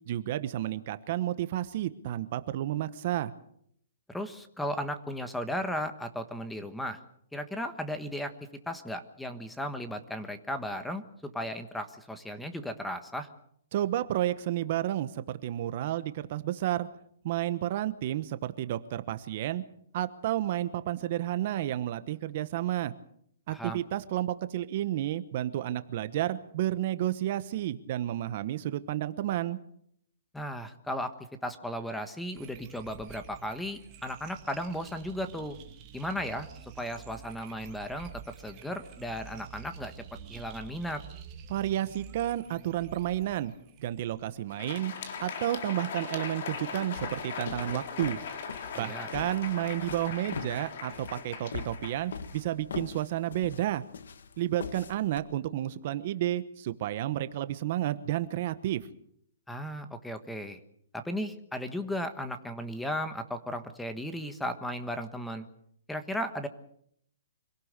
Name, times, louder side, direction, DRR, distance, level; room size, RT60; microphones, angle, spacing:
voice 1, 0.1-3.3 13.7-16.9 17.2-19.6 19.9-22.9 23.5-29.6 41.5-43.5 43.8-44.9 45.2-48.2 48.8-53.8 54.4-58.8, right 13 dB, 45° right, 12 dB, 1.1 m, -31 dB
voice 2, 4.1-7.0 7.3-8.3 8.7-13.3 23.5-23.8 30.3-31.1 31.4-35.6 35.9-39.9 40.3-41.0 48.7-49.1 59.5-60.6 60.9-65.5 65.9-66.5, equal, 5° left, 8 dB, 1.3 m, -35 dB
sound 1, 32.3-44.3, right 7 dB, 25° right, 2.4 m, -49 dB
Crowd, 44.4-52.9, left 6 dB, 55° left, 3.5 m, -39 dB
sound 2, 46.5-55.2, left 6 dB, 80° left, 1.7 m, -42 dB
25.5 x 17.5 x 6.7 m, 0.70 s
hypercardioid pair, 160°, 0 cm